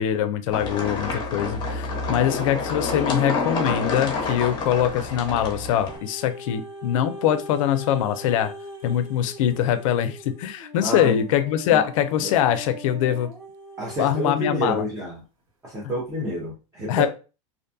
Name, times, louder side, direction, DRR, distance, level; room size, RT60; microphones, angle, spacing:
voice 1, 0.0-8.5 8.8-13.3 14.0-14.9 16.9-17.1, left 10 dB, 70° left, 10 dB, 0.4 m, -23 dB
sound 1, 0.5-6.0, left 3 dB, 25° left, 0.7 m, -28 dB
sound 2, 5.7-14.8 15.5-15.6, equal, 90° right, 1.1 m, -41 dB
voice 2, 10.8-11.3 11.7-11.8 12.2-12.3 13.8-15.2 15.6-17.1, equal, 15° right, -3 dB, 0.6 m, -29 dB
2.5 x 2.2 x 2.5 m, 0.33 s
supercardioid pair, 130°, 18 cm